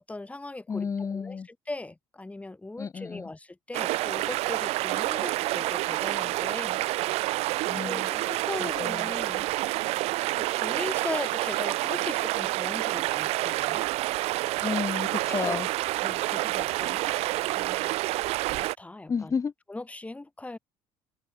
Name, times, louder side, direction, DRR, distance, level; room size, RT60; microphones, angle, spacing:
voice 1, 0.0-7.5 7.8-9.5 10.3-13.8 15.1-15.6 16.0-19.3 19.7-20.6, left 2 dB, 10° left, 4.5 m, -39 dB
voice 2, 0.7-1.5 2.8-3.3 7.7-8.1 8.6-9.1 14.6-15.7 19.1-19.5, left 5 dB, 30° left, 1.4 m, -31 dB
sound 1, 3.7-18.7, right 19 dB, 70° right, 1.8 m, -28 dB
supercardioid pair, 85°, 11 cm